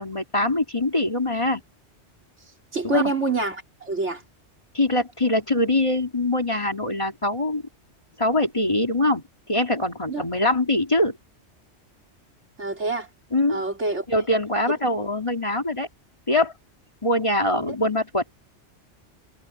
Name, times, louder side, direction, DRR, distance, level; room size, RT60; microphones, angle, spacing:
voice 1, 0.0-1.6 2.8-3.0 4.7-7.6 8.2-11.2 13.3-13.6 14.1-15.9 16.3-16.5 17.0-18.2, left 1 dB, 25° left, 2.9 m, -23 dB
voice 2, 2.7-4.2 10.1-10.2 12.6-13.1 13.5-14.1, right 3 dB, 75° right, 4.3 m, -26 dB
omnidirectional pair, 1.2 m